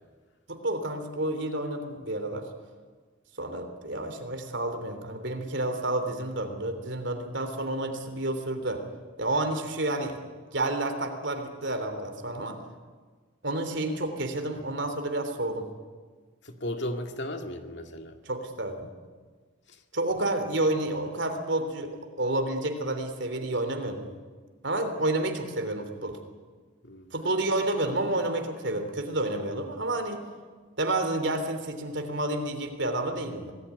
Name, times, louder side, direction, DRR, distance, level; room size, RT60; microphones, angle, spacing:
voice 1, 0.5-2.4 3.4-8.8 9.2-10.2 10.5-12.6 13.4-15.7 18.2-18.9 19.9-24.1 24.6-26.2 27.1-30.2 30.8-33.5, right 2 dB, 65° right, 7 dB, 3.3 m, -30 dB
voice 2, 16.4-18.2 19.7-19.8 26.8-27.1, left 1 dB, 60° left, 5 dB, 2.3 m, -35 dB
25.5 x 18.5 x 9.7 m, 1.5 s
head